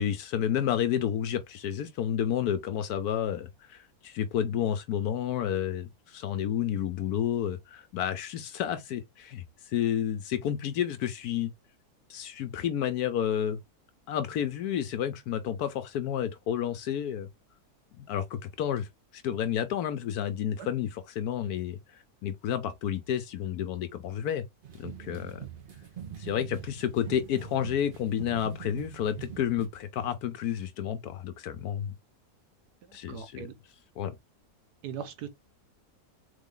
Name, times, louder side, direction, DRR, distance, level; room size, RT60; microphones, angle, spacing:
voice 1, 0.0-11.5 12.1-13.6 14.1-17.3 18.0-18.9 19.1-24.4 24.8-25.4 26.2-31.9 32.9-33.5 34.0-34.1, left 9 dB, 75° left, 1.1 m, -30 dB
sound 1, 24.6-29.7, right 8 dB, 40° right, 0.9 m, -43 dB
voice 2, 32.8-33.5 34.8-35.3, right 8 dB, 75° right, 1.4 m, -40 dB
4.0 x 3.5 x 3.7 m
omnidirectional pair, 1.7 m